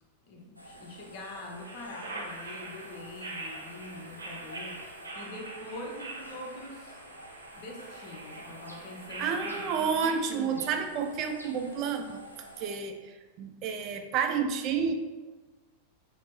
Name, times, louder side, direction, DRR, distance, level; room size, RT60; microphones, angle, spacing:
voice 1, 0.3-7.0 7.6-10.7, left 1 dB, 45° left, 1 dB, 0.7 m, -44 dB
sound 1, 0.6-12.7, equal, 85° left, 0.5 m, -50 dB
sound 2, 1.5-10.1, right 2 dB, 75° right, 0.7 m, -43 dB
voice 2, 9.2-12.2 12.6-14.9, right 6 dB, 40° right, 5 dB, 0.3 m, -30 dB
5.8 x 2.0 x 3.0 m, 1.2 s
figure-of-eight pair, 90°, 0 cm